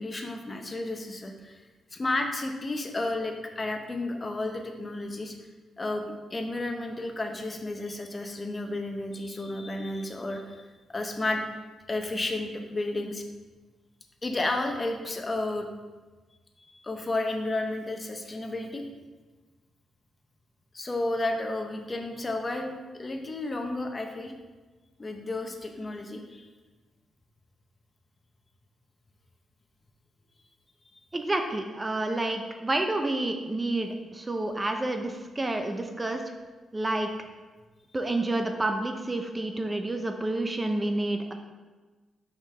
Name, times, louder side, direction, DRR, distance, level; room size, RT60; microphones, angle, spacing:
voice 1, 0.0-1.6 1.9-5.4 5.8-11.4 11.9-13.2 14.2-15.7 16.7-18.8 20.7-22.7 23.0-24.3 25.0-26.5, left 2 dB, 30° left, 4 dB, 0.8 m, -32 dB
voice 2, 31.1-36.2 36.7-37.1 37.9-41.3, right 2 dB, 25° right, 5 dB, 0.6 m, -29 dB
6.3 x 5.2 x 3.3 m, 1.3 s
cardioid pair, 70°, 0 cm